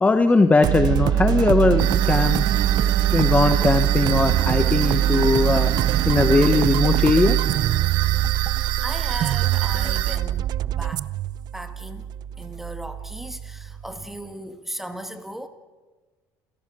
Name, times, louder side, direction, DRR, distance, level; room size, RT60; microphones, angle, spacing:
voice 1, 0.0-2.5 3.1-5.7 6.1-7.4, left 3 dB, 15° left, 9 dB, 1.0 m, -19 dB
sound 1, 0.6-14.0, right 12 dB, 50° right, 0.6 m, -23 dB
sound 2, 1.8-10.2, right 14 dB, 70° right, 1.3 m, -29 dB
sound 3, 1.8-6.8, right 11 dB, 90° right, 1.2 m, -33 dB
voice 2, 8.8-11.1 11.5-12.1 12.4-15.5, right 1 dB, 5° right, 9 dB, 1.8 m, -36 dB
29.0 x 16.5 x 6.2 m, 1.3 s
cardioid pair, 120°, 9 cm